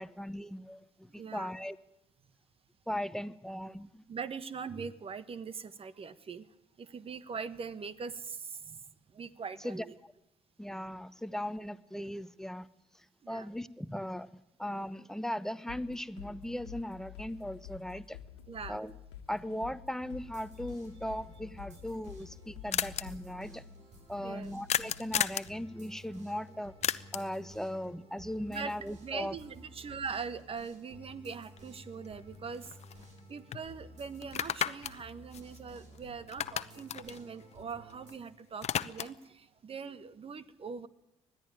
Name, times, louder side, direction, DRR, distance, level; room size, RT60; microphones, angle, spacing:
voice 1, 0.0-1.8 2.9-4.0 9.6-9.8 10.6-12.7 12.9-14.3 14.6-18.2 18.7-18.9 19.3-23.7 24.1-26.7 27.1-29.3, left 1 dB, 5° left, 13 dB, 1.1 m, -38 dB
voice 2, 1.1-1.5 4.1-6.5 6.8-8.8 9.1-9.9 13.2-13.5 18.5-18.8 24.2-24.5 28.5-28.7 29.0-32.7 33.3-40.9, right 5 dB, 45° right, 14 dB, 1.4 m, -42 dB
sound 1, 15.7-23.5, left 10 dB, 90° left, 1.5 m, -49 dB
sound 2, 20.0-38.1, equal, 60° right, 7.4 m, -54 dB
sound 3, 21.8-21.9 22.0-22.1 22.3-22.4 22.7-23.0 24.7-25.5 26.8-27.4 31.6-31.7 32.0-33.2 33.5-33.6 34.2-36.0 36.3-38.1 38.4-39.3, left 10 dB, 50° left, 0.9 m, -34 dB
20.5 x 13.5 x 9.4 m, 0.87 s
hypercardioid pair, 55°, 14 cm